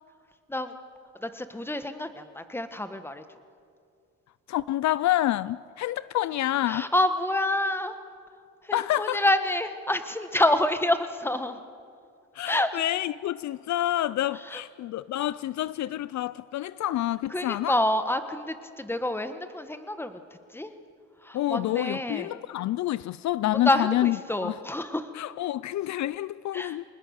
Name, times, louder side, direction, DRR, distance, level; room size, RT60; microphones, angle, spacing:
voice 1, 1.2-3.2 6.7-7.9 8.6-11.6 12.4-12.8 14.4-14.6 17.3-20.2 20.5-20.7 21.2-22.3 23.5-25.1 26.5-26.8, left 1 dB, 5° left, 1.5 m, -27 dB
voice 2, 4.5-6.9 8.7-9.2 12.3-17.7 21.3-24.6 25.1-26.8, left 14 dB, 65° left, 0.5 m, -28 dB
25.0 x 20.0 x 6.6 m
cardioid pair, 90°, 30 cm